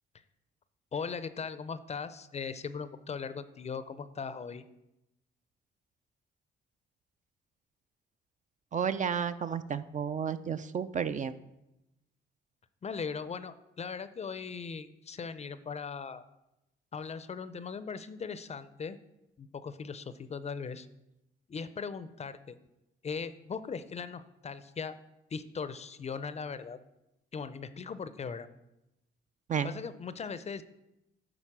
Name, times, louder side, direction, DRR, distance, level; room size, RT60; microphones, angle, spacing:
voice 1, 0.9-4.7 12.8-16.2 16.9-19.0 19.4-20.9 21.5-22.6 23.0-25.0 25.3-26.8 27.3-28.5 29.6-30.6, left 5 dB, 35° left, 13 dB, 0.5 m, -39 dB
voice 2, 8.7-11.3 29.5-29.7, right 7 dB, 40° right, 12 dB, 0.4 m, -32 dB
9.9 x 4.0 x 6.0 m, 0.91 s
cardioid pair, 90°, 20 cm